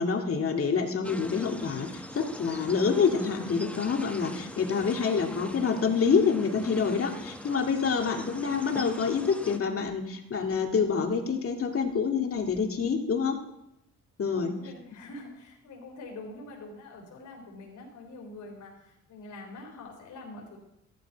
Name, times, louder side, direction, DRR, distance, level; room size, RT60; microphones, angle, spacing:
voice 1, 0.0-13.4 14.2-14.5, left 5 dB, 50° left, 3 dB, 2.3 m, -27 dB
sound 1, 1.0-9.6, left 1 dB, 5° left, 1.1 m, -42 dB
voice 2, 14.2-20.6, left 2 dB, 75° left, 0 dB, 4.0 m, -45 dB
13.5 x 12.5 x 4.6 m, 0.84 s
cardioid pair, 90°, 30 cm